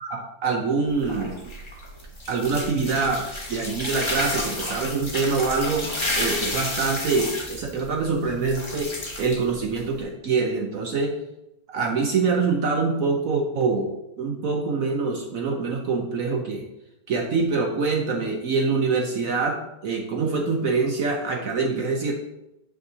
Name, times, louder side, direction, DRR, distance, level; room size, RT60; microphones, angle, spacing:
voice 1, 0.0-1.4 2.3-5.9 6.1-8.9 9.2-11.2 11.7-16.6 17.1-22.1, right 4 dB, 70° right, 2 dB, 0.8 m, -25 dB
sound 1, 0.9-10.0, left 1 dB, 35° left, 0.5 m, -31 dB
8.0 x 5.1 x 2.7 m, 0.89 s
omnidirectional pair, 2.1 m